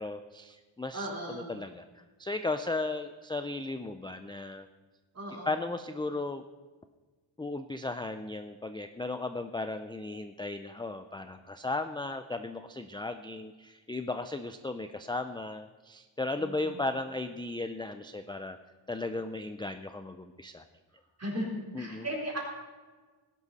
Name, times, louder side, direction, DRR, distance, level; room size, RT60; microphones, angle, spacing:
voice 1, 0.0-4.7 5.5-6.4 7.4-18.6 18.9-20.6 21.7-22.1, left 2 dB, 10° left, 9 dB, 0.3 m, -36 dB
voice 2, 0.9-1.5 5.1-5.5 16.4-16.8 21.2-21.5 21.8-22.4, right 1 dB, 30° right, -2 dB, 3.8 m, -36 dB
18.5 x 11.0 x 4.1 m, 1.4 s
wide cardioid pair, 175°, 48 cm